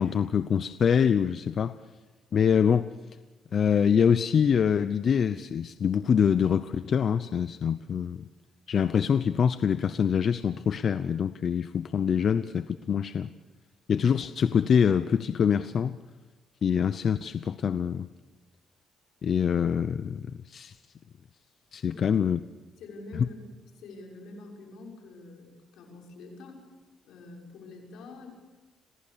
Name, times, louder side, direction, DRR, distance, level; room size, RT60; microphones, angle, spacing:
voice 1, 0.0-1.8 2.3-2.9 3.5-8.3 8.7-13.3 13.9-16.0 16.6-18.1 19.2-20.8 21.7-22.4 23.1-23.3, left 7 dB, 55° left, 0.7 m, -25 dB
voice 2, 22.8-23.4 23.7-26.6 27.0-28.3, left 3 dB, 80° left, 6.2 m, -45 dB
27.0 x 17.5 x 6.9 m
cardioid pair, 90°, 0 cm